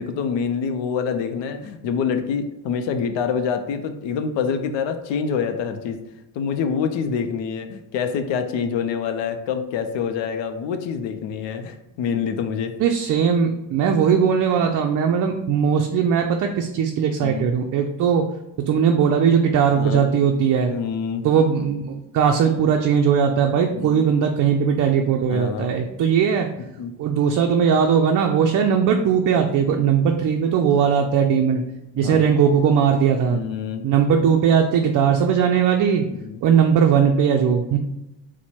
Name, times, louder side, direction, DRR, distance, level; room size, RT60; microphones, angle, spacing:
voice 1, 0.0-6.0 6.3-12.7 17.2-17.5 19.7-20.1 20.7-21.2 23.7-24.1 25.2-25.7 26.8-26.9 30.7-30.9 32.0-32.3 33.3-33.8 36.1-36.4, left 6 dB, 70° left, 7 dB, 0.6 m, -26 dB
voice 2, 12.8-18.3 18.7-20.7 21.2-26.5 27.0-31.6 31.9-33.4 33.8-36.1 36.4-37.8, right 7 dB, 45° right, 3 dB, 0.4 m, -19 dB
4.3 x 2.2 x 4.3 m, 0.91 s
cardioid pair, 100°, 45 cm